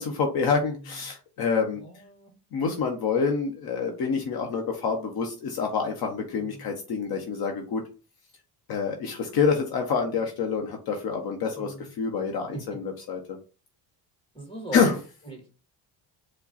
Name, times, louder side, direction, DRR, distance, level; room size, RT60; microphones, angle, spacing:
voice 1, 0.0-1.8 2.5-7.8 8.7-13.2 14.7-14.9, left 5 dB, 60° left, 3 dB, 0.9 m, -27 dB
voice 2, 0.7-1.1 1.7-2.3 6.4-6.7 11.5-11.9 12.5-12.6 14.3-15.5, right 1 dB, 10° left, 0 dB, 2.2 m, -40 dB
4.8 x 2.2 x 4.0 m, 0.34 s
cardioid pair, 115°, 42 cm